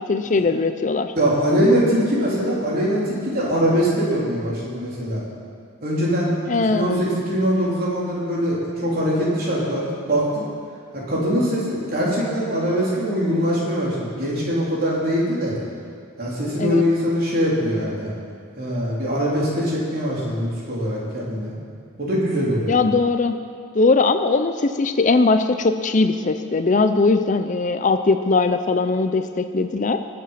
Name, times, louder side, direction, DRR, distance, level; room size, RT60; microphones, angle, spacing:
voice 1, 0.0-1.1 6.5-7.1 16.6-16.8 22.7-23.4 23.7-30.0, left 3 dB, 40° left, 9 dB, 0.5 m, -20 dB
voice 2, 1.2-5.2 5.8-6.3 6.7-10.4 10.9-15.5 16.2-18.1 18.6-21.5 22.0-22.8, equal, 50° right, -6 dB, 3.8 m, -22 dB
22.0 x 7.6 x 5.8 m, 2.2 s
head